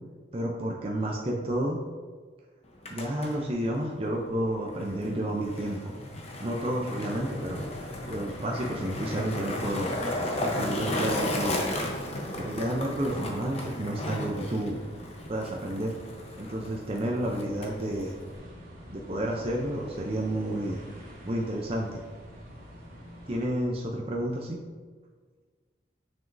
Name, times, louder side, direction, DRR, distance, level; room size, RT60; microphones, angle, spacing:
voice 1, 0.3-1.8 2.9-5.9 6.4-7.7 8.1-10.0 10.4-11.6 12.4-14.8 15.3-16.0 16.4-18.1 18.9-20.8 21.2-22.0 23.3-24.6, right 1 dB, 30° right, -1 dB, 0.5 m, -30 dB
Skateboard, 2.6-18.4, left 1 dB, 35° left, 0.8 m, -35 dB
sound 1, 7.1-23.5, equal, 50° right, 1.6 m, -47 dB
7.1 x 6.1 x 2.6 m, 1.5 s
head